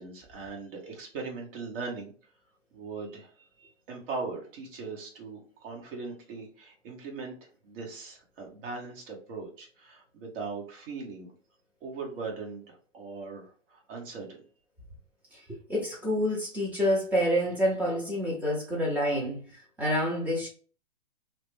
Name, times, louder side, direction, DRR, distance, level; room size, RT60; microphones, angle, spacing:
voice 1, 0.0-2.1 2.7-3.3 3.6-11.3 11.8-14.4, right 4 dB, 45° right, -1 dB, 1.2 m, -40 dB
voice 2, 15.3-20.5, equal, 5° right, -3 dB, 0.5 m, -28 dB
2.9 x 2.1 x 3.2 m, 0.39 s
hypercardioid pair, 140°, 38 cm